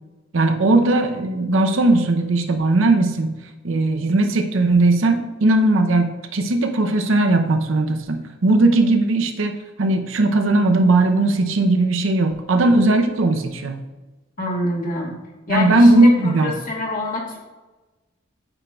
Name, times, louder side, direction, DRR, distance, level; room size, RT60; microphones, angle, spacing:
voice 1, 0.3-3.4 3.6-13.8 15.5-16.5, right 2 dB, 70° right, 6 dB, 0.6 m, -18 dB
voice 2, 14.4-15.2 15.5-17.4, left 2 dB, 45° left, 0 dB, 1.2 m, -25 dB
8.9 x 4.5 x 2.3 m, 1.2 s
head